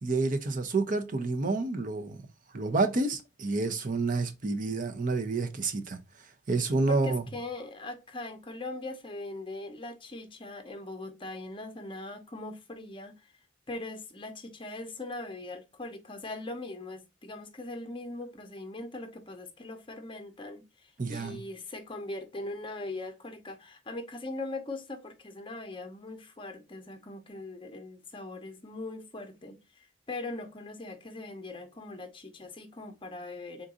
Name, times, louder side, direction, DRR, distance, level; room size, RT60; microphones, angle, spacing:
voice 1, 0.0-2.2 2.5-6.0 6.5-7.2 21.0-21.4, right 3 dB, 45° right, 0.6 m, -29 dB
voice 2, 6.9-13.3 13.7-29.5 30.1-33.7, left 2 dB, 30° left, 0.7 m, -40 dB
3.8 x 2.5 x 3.7 m
head